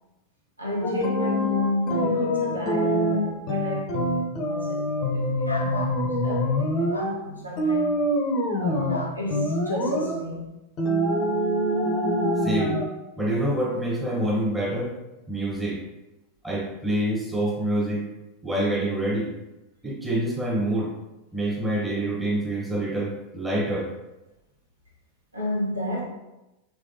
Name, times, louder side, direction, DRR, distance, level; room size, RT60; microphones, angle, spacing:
voice 1, 0.6-4.1 4.4-8.0 8.6-10.5 25.3-26.0, left 1 dB, 85° right, 0.8 m, -32 dB
sound 1, 0.8-7.2 7.6-9.0 9.3-10.2 10.8-12.9, equal, 35° left, 0.5 m, -25 dB
sound 2, 5.4-6.0 6.9-7.1 8.9-9.2, left 2 dB, 85° left, 0.4 m, -32 dB
voice 2, 12.4-12.8 13.2-14.9 15.3-15.8 16.4-18.1 18.4-19.3 19.8-20.9 21.3-23.9, right 1 dB, 5° right, 0.8 m, -26 dB
3.3 x 3.1 x 2.6 m
figure-of-eight pair, 90°, 0 cm